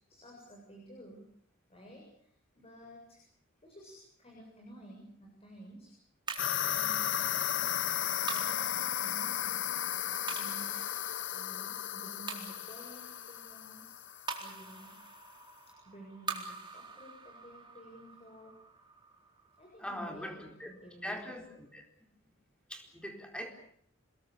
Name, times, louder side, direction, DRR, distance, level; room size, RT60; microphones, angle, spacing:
voice 1, 0.1-1.3 1.7-3.2 3.6-5.9 6.6-10.0 10.3-10.8 11.3-15.0 15.7-18.6 19.6-21.6, right 1 dB, 30° left, -1 dB, 7.6 m, -53 dB
sound 1, 6.3-20.8, right 4 dB, 25° right, 4.2 m, -46 dB
sound 2, 6.4-14.6, left 11 dB, 65° left, 0.9 m, -34 dB
voice 2, 19.8-20.7 21.0-21.5 21.7-21.9 22.7-23.5, equal, 5° left, 3 dB, 4.3 m, -41 dB
27.5 x 21.5 x 7.0 m, 0.65 s
head